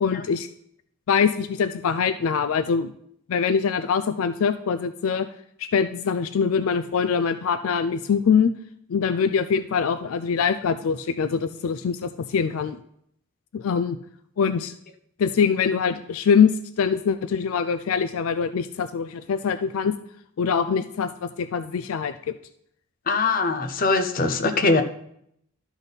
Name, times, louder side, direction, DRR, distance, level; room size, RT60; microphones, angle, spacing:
voice 1, 0.0-0.5 1.1-2.9 3.3-5.3 5.6-8.5 8.9-12.8 13.5-14.0 14.4-14.7 15.2-19.9 20.4-22.4, left 6 dB, 75° left, 11 dB, 0.4 m, -23 dB
voice 2, 23.1-24.8, left 3 dB, 40° left, 7 dB, 0.7 m, -22 dB
12.0 x 4.1 x 5.2 m, 0.72 s
head